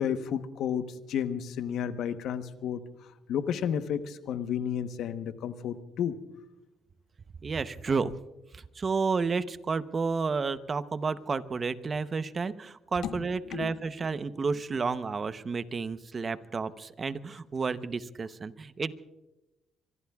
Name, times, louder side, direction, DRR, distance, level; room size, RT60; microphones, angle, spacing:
voice 1, 0.0-2.9 3.3-6.2 13.0-13.2 13.5-13.7, left 8 dB, 80° left, 10 dB, 1.0 m, -32 dB
voice 2, 7.4-8.1 8.5-18.9, right 4 dB, 40° right, 12 dB, 0.8 m, -31 dB
25.0 x 23.5 x 2.4 m, 0.98 s
cardioid pair, 90°, 0 cm